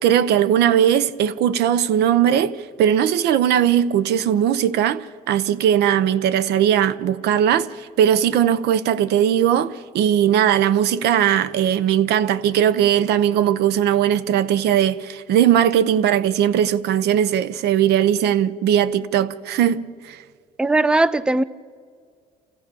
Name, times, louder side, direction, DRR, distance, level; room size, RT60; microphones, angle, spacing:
voice 1, 0.0-20.2, right 10 dB, 75° right, 0.8 m, -19 dB
voice 2, 20.6-21.4, right 2 dB, 5° right, 0.5 m, -18 dB
28.0 x 15.0 x 7.0 m
cardioid pair, 110°, 17 cm